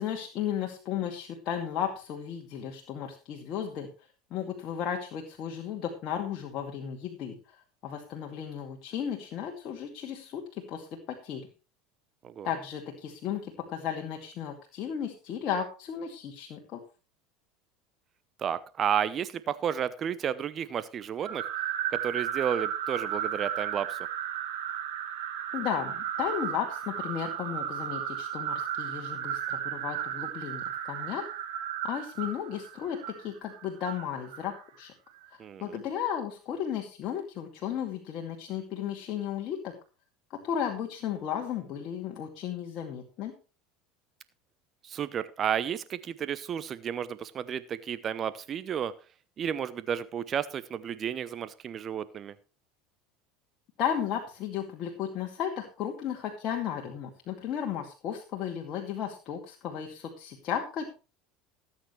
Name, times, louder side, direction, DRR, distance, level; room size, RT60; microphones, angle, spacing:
voice 1, 0.0-3.9 4.3-11.4 12.4-16.8 25.5-31.3 31.8-34.9 35.3-39.7 40.3-43.3 53.8-60.8, left 9 dB, 50° left, 1 dB, 2.4 m, -34 dB
voice 2, 18.4-21.5 21.9-24.1 35.4-35.8 44.8-48.9 49.4-52.3, right 8 dB, 40° right, 15 dB, 0.8 m, -32 dB
sound 1, 21.2-34.6, right 10 dB, 70° right, 3.8 m, -34 dB
17.5 x 8.8 x 3.2 m, 0.33 s
hypercardioid pair, 80°, 0 cm